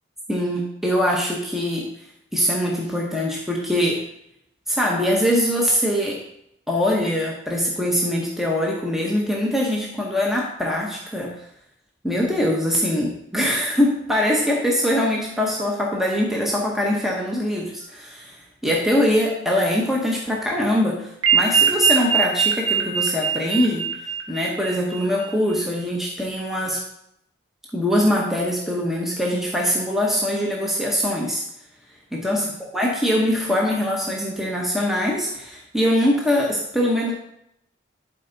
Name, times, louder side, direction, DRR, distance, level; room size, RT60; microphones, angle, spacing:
voice 1, 0.3-1.9 2.3-4.0 4.7-6.2 6.7-11.4 12.0-18.3 18.6-23.9 24.3-26.8 27.7-31.4 32.1-32.5 32.7-37.1, equal, ahead, -2 dB, 1.0 m, -22 dB
sound 1, 21.2-25.3, right 7 dB, 90° right, 1.5 m, -22 dB
11.5 x 4.4 x 3.9 m, 0.77 s
head